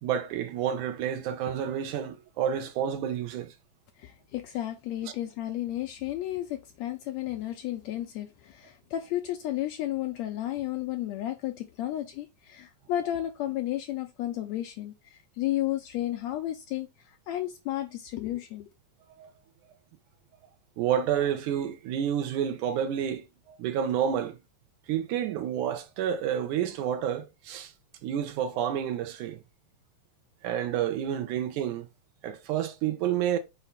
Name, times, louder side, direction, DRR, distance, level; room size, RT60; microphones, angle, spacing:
voice 1, 0.0-3.5 19.2-19.3 20.8-24.4 24.9-27.7 28.0-29.4 30.4-31.9 32.2-33.4, right 9 dB, 80° right, 2.2 m, -29 dB
voice 2, 4.0-18.7, left 13 dB, 80° left, 1.6 m, -33 dB
5.8 x 4.4 x 4.0 m
omnidirectional pair, 3.7 m